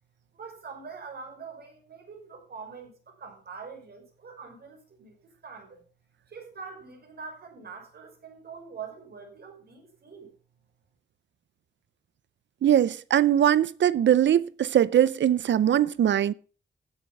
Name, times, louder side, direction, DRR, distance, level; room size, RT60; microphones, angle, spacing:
voice 1, 0.3-5.8 6.3-10.3, right 5 dB, 60° right, 5.9 m, -44 dB
voice 2, 12.6-16.3, right 10 dB, 90° right, 0.5 m, -21 dB
15.0 x 7.3 x 5.5 m
wide cardioid pair, 160°, 18 cm